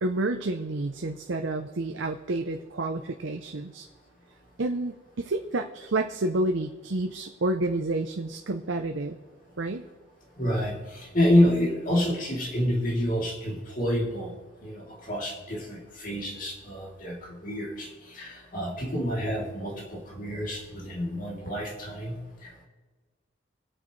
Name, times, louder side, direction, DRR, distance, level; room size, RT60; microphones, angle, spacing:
voice 1, 0.0-3.9 4.6-9.2 9.6-9.8, right 2 dB, 75° right, 5 dB, 0.7 m, -29 dB
voice 2, 10.4-14.3 14.6-22.2 22.4-22.6, left 1 dB, 45° left, -2 dB, 3.0 m, -28 dB
24.0 x 8.9 x 3.2 m, 1.4 s
head